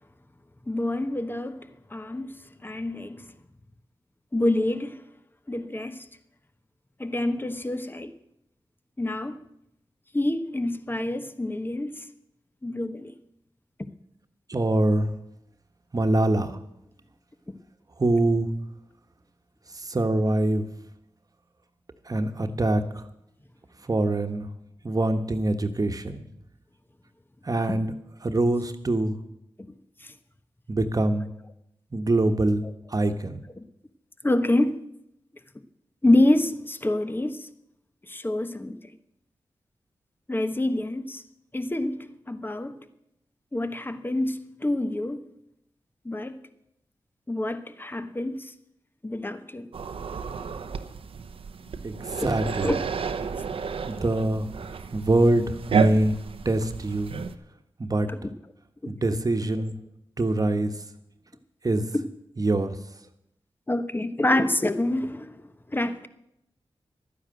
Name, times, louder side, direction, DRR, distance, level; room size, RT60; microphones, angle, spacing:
voice 1, 0.7-1.6 1.9-3.3 4.3-5.0 5.5-6.1 7.0-8.1 9.0-9.4 10.1-12.0 12.6-13.1 17.5-17.6 30.0-30.1 33.6-33.7 34.2-34.8 36.0-37.5 38.1-38.8 40.3-41.2 41.5-42.8 43.5-45.3 46.0-46.4 47.3-48.5 49.0-49.7 52.2-52.3 52.6-52.8 58.1-58.3 58.8-59.2 61.9-62.0 63.7-66.1, left 1 dB, 20° left, 1.1 m, -27 dB
voice 2, 14.5-15.1 15.9-16.6 18.0-18.5 19.8-20.7 22.1-23.0 23.9-24.5 24.8-26.2 27.4-27.9 28.2-29.2 30.7-31.3 31.9-32.6 32.9-33.4 51.8-52.8 53.9-54.5 54.9-56.1 56.4-57.1 57.8-58.1 58.9-59.7 60.2-60.7 61.6-61.8 62.4-62.8, right 2 dB, 40° right, 1.3 m, -24 dB
sound 1, 49.7-57.3, right 5 dB, 85° right, 0.8 m, -31 dB
12.0 x 9.8 x 7.7 m
cardioid pair, 50°, 9 cm